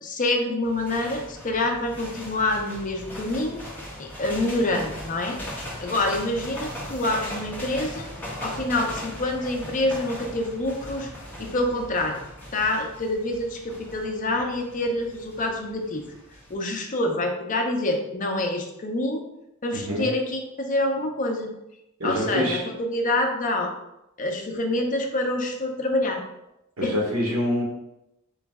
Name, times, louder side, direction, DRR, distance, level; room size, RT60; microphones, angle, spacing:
voice 1, 0.0-3.6 4.0-5.4 5.8-8.1 8.4-11.1 11.4-12.2 12.5-16.0 16.5-19.2 19.6-21.5 22.0-23.7 24.2-26.2 26.8-27.0 27.3-27.4, left 1 dB, 40° left, 3 dB, 0.6 m, -26 dB
sound 1, 0.6-16.5, left 1 dB, 10° left, 1.0 m, -39 dB
voice 2, 22.0-22.6 26.8-27.6, equal, 70° right, -1 dB, 1.2 m, -25 dB
3.9 x 3.1 x 3.5 m, 0.86 s
head